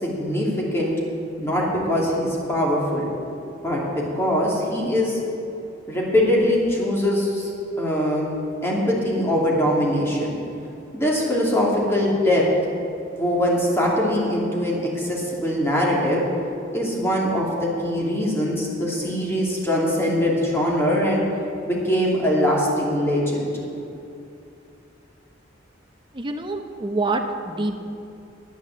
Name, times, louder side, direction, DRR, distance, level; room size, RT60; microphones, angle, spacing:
voice 1, 0.0-0.9 1.4-3.1 3.6-3.8 4.1-5.2 5.9-7.5 7.8-8.3 8.6-10.3 10.9-12.4 13.2-16.2 16.7-21.2 21.6-23.5, equal, 15° left, -4 dB, 2.6 m, -22 dB
voice 2, 26.1-27.8, right 2 dB, 25° right, 5 dB, 0.9 m, -26 dB
10.5 x 8.9 x 7.5 m, 2.7 s
head